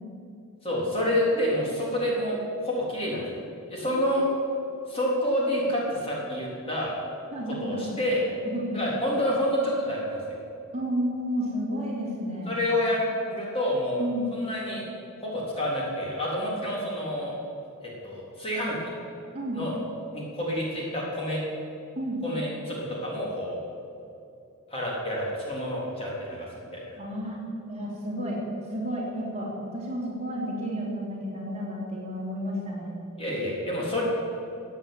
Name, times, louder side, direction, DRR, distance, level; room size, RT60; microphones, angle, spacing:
voice 1, 0.6-3.2 3.7-4.2 4.9-6.9 7.6-8.2 8.7-10.4 12.5-13.0 13.3-14.0 14.3-14.8 15.2-17.3 18.0-18.7 19.5-19.7 20.1-21.4 22.2-23.6 24.7-26.5 26.7-27.0 33.2-34.0, equal, 25° left, -4 dB, 3.8 m, -28 dB
voice 2, 7.3-8.0 8.4-8.8 10.7-12.6 14.0-14.3 19.3-19.6 22.0-22.2 27.0-27.4 27.7-28.4 28.7-32.9, equal, 30° right, -4 dB, 3.2 m, -31 dB
15.0 x 8.8 x 9.0 m, 2.7 s
head